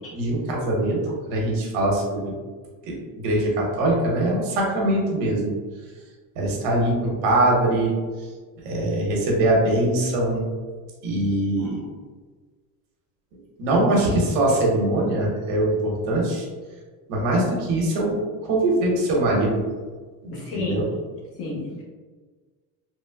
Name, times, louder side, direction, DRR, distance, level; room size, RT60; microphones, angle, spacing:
voice 1, 0.1-1.0 1.3-2.3 2.9-5.5 6.4-7.9 8.6-10.5 11.0-11.8 13.6-16.5 17.1-19.6 20.2-20.9, right 1 dB, 75° right, -2 dB, 1.0 m, -22 dB
voice 2, 20.3-20.8 21.4-21.8, left 3 dB, 35° left, -4 dB, 0.7 m, -31 dB
3.5 x 2.0 x 2.2 m, 1.4 s
cardioid pair, 155°, 40 cm